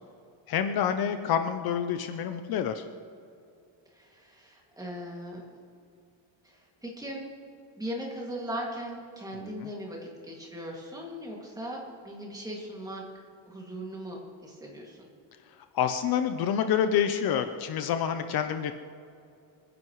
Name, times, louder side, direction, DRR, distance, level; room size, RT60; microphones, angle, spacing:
voice 1, 0.5-2.9 9.6-9.7 15.7-18.7, left 8 dB, 50° left, 8 dB, 0.8 m, -27 dB
voice 2, 3.9-5.4 6.4-7.3 7.8-13.1 13.5-15.1, equal, 10° right, -2 dB, 2.3 m, -39 dB
27.0 x 10.5 x 3.1 m, 2.5 s
cardioid pair, 170°, 46 cm